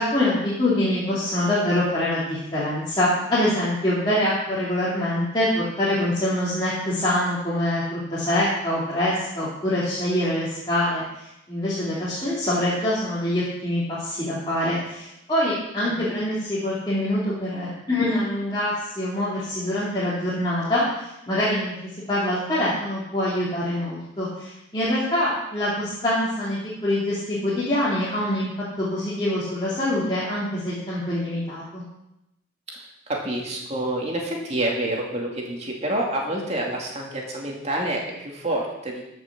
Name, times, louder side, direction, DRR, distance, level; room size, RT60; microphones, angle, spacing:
voice 1, 0.0-28.5 28.8-31.8, left 1 dB, 25° left, -9 dB, 2.8 m, -25 dB
voice 2, 32.7-39.0, right 1 dB, 35° right, -1 dB, 2.5 m, -28 dB
14.5 x 6.3 x 6.1 m, 0.87 s
head